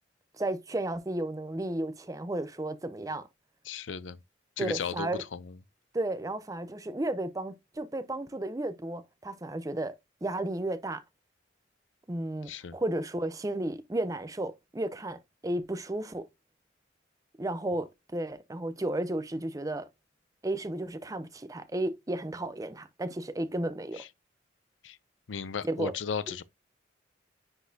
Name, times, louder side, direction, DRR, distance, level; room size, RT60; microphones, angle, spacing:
voice 1, 0.4-3.2 4.6-5.2 5.9-11.0 12.1-16.3 17.4-19.9 20.4-24.0 25.6-25.9, right 1 dB, 20° right, 0.6 m, -33 dB
voice 2, 3.7-4.2 4.6-5.5 12.5-12.8 24.0-24.1 24.8-25.0 25.3-26.4, left 6 dB, 85° left, 0.5 m, -35 dB
9.7 x 4.0 x 2.7 m
head